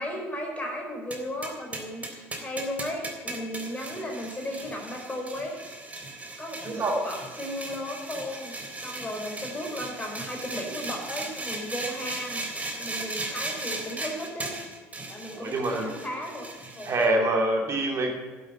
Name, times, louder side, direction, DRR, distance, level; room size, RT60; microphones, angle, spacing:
voice 1, 0.0-5.6 6.4-14.6 15.1-16.5 16.8-17.0, left 1 dB, 20° left, 1 dB, 4.7 m, -35 dB
sound 1, 1.1-17.1, right 2 dB, 20° right, 3.2 m, -37 dB
voice 2, 6.6-7.0 15.3-15.9 16.8-18.1, right 2 dB, 40° right, 1 dB, 2.9 m, -25 dB
11.5 x 8.1 x 9.4 m, 1.3 s
hypercardioid pair, 60°, 7 cm